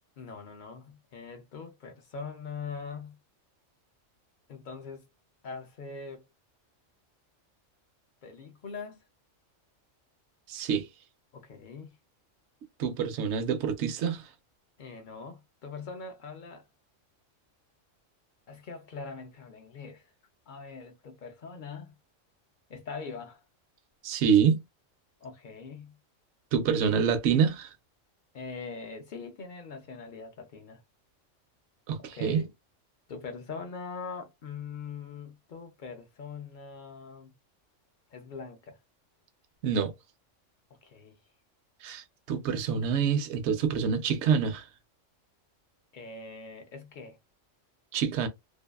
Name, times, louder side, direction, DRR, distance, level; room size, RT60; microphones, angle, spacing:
voice 1, 0.2-3.2 4.5-5.1 5.4-6.3 8.2-9.0 11.3-11.9 14.8-16.6 18.5-20.1 20.5-21.9 22.7-23.4 25.2-26.0 28.3-30.8 32.0-32.5 33.1-37.3 38.1-38.8 40.8-41.2 45.9-47.2, left 5 dB, 60° left, 0.5 m, -42 dB
voice 2, 10.5-10.9 12.8-14.3 24.0-24.6 26.5-27.7 31.9-32.4 39.6-39.9 41.8-44.7 47.9-48.3, right 7 dB, 70° right, 0.8 m, -26 dB
2.6 x 2.3 x 2.2 m
omnidirectional pair, 1.3 m